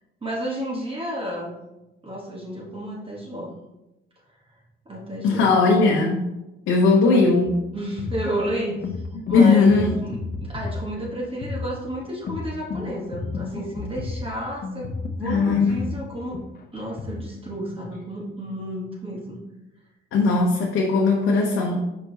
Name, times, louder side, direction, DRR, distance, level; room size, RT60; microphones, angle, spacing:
voice 1, 0.2-1.5 2.0-3.5 4.8-5.6 7.0-7.5 7.7-14.9 15.1-16.4 16.7-19.4, equal, 25° right, -4 dB, 1.4 m, -31 dB
voice 2, 5.2-6.3 6.7-7.5 9.3-9.9 15.2-15.8 20.1-21.8, left 4 dB, 85° left, -1 dB, 0.8 m, -18 dB
sound 1, 7.5-17.2, left 4 dB, 50° left, 0.8 m, -33 dB
5.3 x 4.5 x 4.1 m, 0.96 s
cardioid pair, 90°, 20 cm